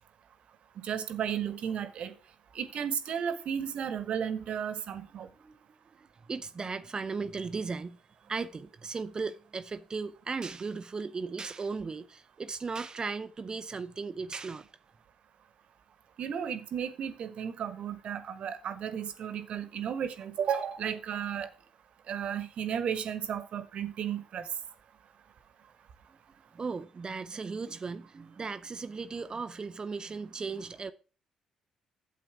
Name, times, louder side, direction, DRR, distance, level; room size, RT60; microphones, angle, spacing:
voice 1, 0.8-2.1 2.5-5.3 16.2-21.5 22.1-24.4, right 8 dB, 60° right, 1.2 m, -34 dB
voice 2, 6.0-8.0 8.3-14.7 26.5-30.9, right 4 dB, 35° right, 0.6 m, -36 dB
8.9 x 7.6 x 4.7 m
hypercardioid pair, 45°, 2 cm